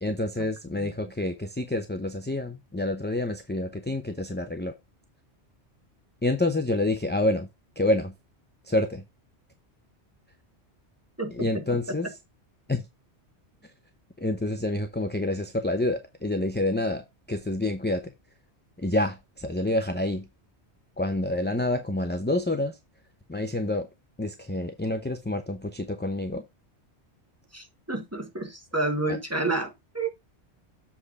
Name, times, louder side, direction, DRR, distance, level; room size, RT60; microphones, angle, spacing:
voice 1, 0.0-4.7 6.2-7.5 7.8-8.1 8.7-9.0 11.3-12.1 12.7-12.8 14.2-18.1 18.8-20.2 21.0-22.8 23.3-23.9 24.2-26.4, left 1 dB, 10° left, 0.7 m, -28 dB
voice 2, 11.2-12.0 27.5-30.1, right 2 dB, 15° right, 1.5 m, -30 dB
7.8 x 4.3 x 4.9 m
omnidirectional pair, 1.2 m